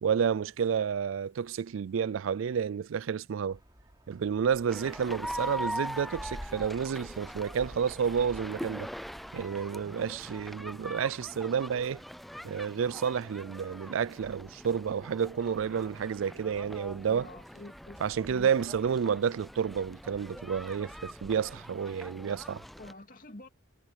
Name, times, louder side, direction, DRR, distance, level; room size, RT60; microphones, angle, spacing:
voice 1, 0.0-3.6 4.1-8.9 9.3-12.0 12.4-17.3 18.0-22.6, right 7 dB, 70° right, 0.4 m, -30 dB
sound 1, 3.5-10.2, equal, 20° right, 3.1 m, -50 dB
sound 2, 4.7-22.9, equal, ahead, 0.4 m, -42 dB
voice 2, 17.1-18.0 18.3-18.5 22.8-23.5, left 2 dB, 45° left, 2.6 m, -47 dB
head